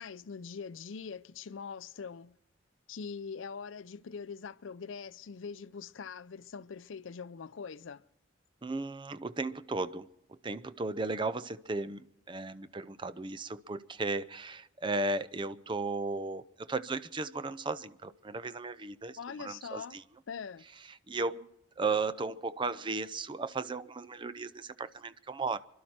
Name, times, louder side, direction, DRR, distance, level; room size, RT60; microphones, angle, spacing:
voice 1, 0.0-2.4 2.9-8.0 19.2-20.0 20.3-20.7, left 5 dB, 85° left, 0.5 m, -43 dB
voice 2, 8.6-20.0 20.9-21.5 21.8-25.6, right 3 dB, 25° right, 0.5 m, -35 dB
26.0 x 12.0 x 4.3 m
head